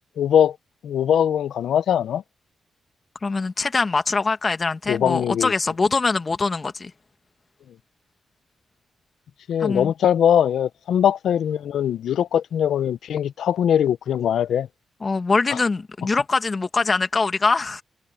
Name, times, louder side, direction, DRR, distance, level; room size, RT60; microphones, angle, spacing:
voice 1, 0.2-0.6 0.8-2.2 4.9-5.5 9.5-14.7, left 9 dB, 80° left, 0.8 m, -21 dB
voice 2, 3.2-6.9 9.6-9.9 15.0-17.8, left 4 dB, 40° left, 2.0 m, -23 dB
cardioid pair, 65°, 0 cm